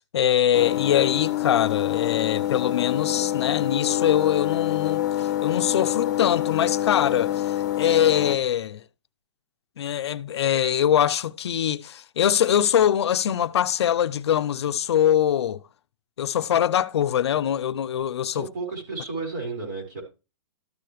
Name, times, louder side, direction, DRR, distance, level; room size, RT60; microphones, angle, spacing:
voice 1, 0.0-8.8 9.8-15.6 16.2-18.5, left 10 dB, 65° left, 0.6 m, -23 dB
sound 1, 0.5-8.4, left 13 dB, 40° left, 0.9 m, -26 dB
voice 2, 18.3-20.0, right 4 dB, 40° right, 4.5 m, -32 dB
13.0 x 6.7 x 3.1 m
hypercardioid pair, 175°, 15 cm